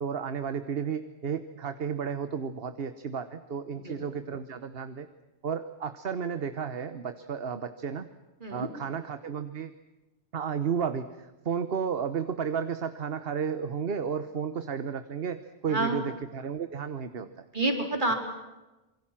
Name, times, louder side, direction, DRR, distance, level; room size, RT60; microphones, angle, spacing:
voice 1, 0.0-5.1 5.4-8.1 8.5-9.7 10.3-17.4, right 6 dB, 70° right, 11 dB, 1.3 m, -33 dB
voice 2, 3.7-4.2 8.4-8.7 15.7-16.1 17.5-18.1, right 2 dB, 50° right, 4 dB, 4.3 m, -29 dB
27.0 x 23.5 x 7.5 m, 1.0 s
omnidirectional pair, 1.0 m